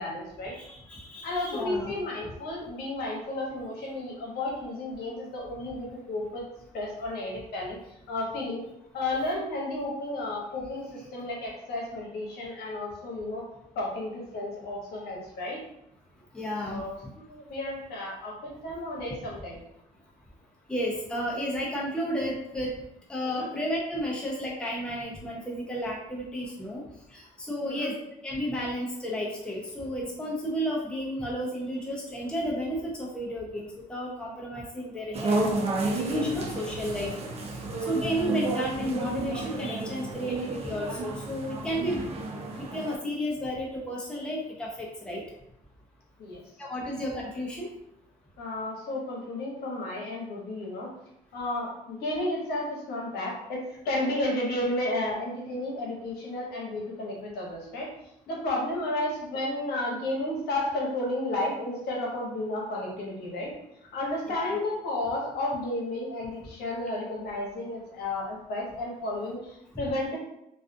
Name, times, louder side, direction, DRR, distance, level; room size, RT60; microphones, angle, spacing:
voice 1, 0.0-0.5 1.2-6.4 6.7-7.8 8.1-8.6 8.9-13.4 13.7-15.6 16.6-19.6 23.2-23.5 27.6-27.9 46.2-46.4 48.4-50.9 51.3-57.9 58.3-63.5 63.9-70.2, left 1 dB, 70° left, -3 dB, 0.9 m, -32 dB
voice 2, 0.5-1.9 16.3-16.8 20.7-22.7 23.1-26.8 27.1-27.9 28.2-37.1 37.9-42.0 42.6-45.2 46.6-47.7 64.3-64.6, equal, 5° left, -4 dB, 0.6 m, -32 dB
sound 1, 35.1-43.0, right 2 dB, 40° right, 0.5 m, -31 dB
2.4 x 2.3 x 2.5 m, 0.80 s
cardioid pair, 110°, 17 cm